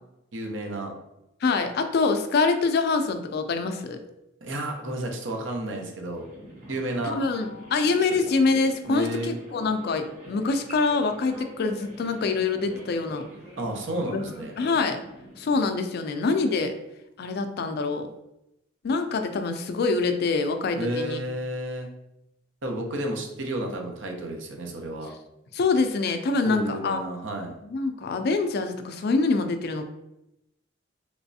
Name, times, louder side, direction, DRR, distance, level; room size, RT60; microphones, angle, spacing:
voice 1, 0.3-1.0 4.4-6.3 6.7-7.2 8.1-8.2 8.9-9.4 13.6-14.6 20.8-21.9 22.6-25.1 26.4-27.5, right 1 dB, 70° right, 2 dB, 0.7 m, -31 dB
voice 2, 1.4-4.0 7.0-13.2 14.1-14.2 14.6-15.0 15.4-16.7 17.2-18.1 18.8-21.2 25.5-27.0 27.6-29.9, left 4 dB, 55° left, 7 dB, 0.4 m, -25 dB
sound 1, 6.1-15.7, equal, 40° right, 1.2 m, -44 dB
3.3 x 3.0 x 2.7 m, 0.87 s
head